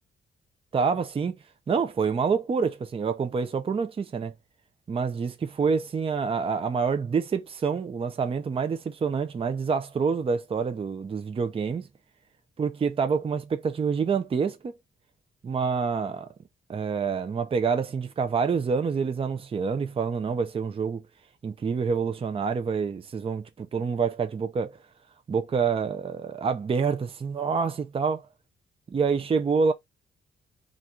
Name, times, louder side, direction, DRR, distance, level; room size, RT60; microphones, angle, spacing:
voice 1, 0.7-1.4 1.7-4.3 4.9-11.9 12.6-14.7 15.4-16.3 16.7-21.0 21.4-24.8 25.3-28.2 28.9-29.7, right 5 dB, 30° right, 0.6 m, -27 dB
3.9 x 2.4 x 4.4 m
wide cardioid pair, 175°, 19 cm